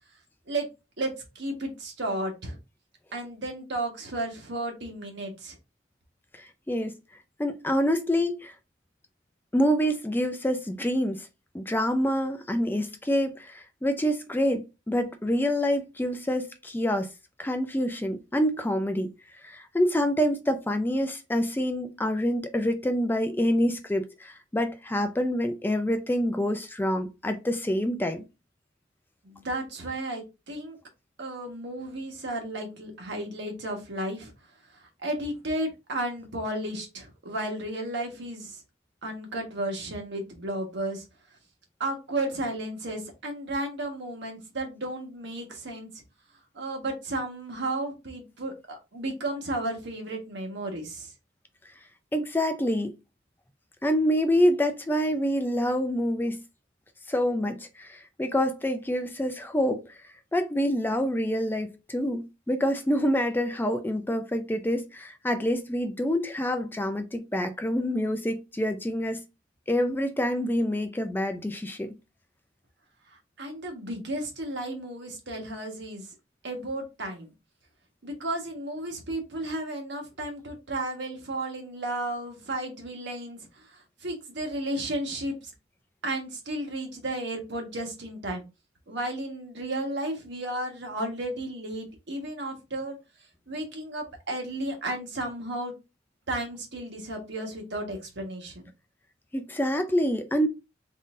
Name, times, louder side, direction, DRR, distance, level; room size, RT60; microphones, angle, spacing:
voice 1, 1.0-2.6 3.1-5.5 29.2-30.8 31.2-34.3 34.7-38.6 39.0-41.0 41.8-45.9 46.5-48.5 48.9-51.1 73.4-76.1 76.4-77.3 78.0-85.5 86.0-88.4 88.9-93.0 93.5-95.7 96.3-98.7, right 1 dB, 65° right, 1.4 m, -33 dB
voice 2, 6.3-7.0 7.4-8.5 9.5-11.3 11.5-17.1 17.4-19.1 19.4-28.2 52.1-52.9 53.8-56.4 57.1-59.8 60.3-69.2 69.7-71.9 99.3-100.5, equal, 10° left, 0.4 m, -27 dB
3.8 x 3.7 x 2.5 m
head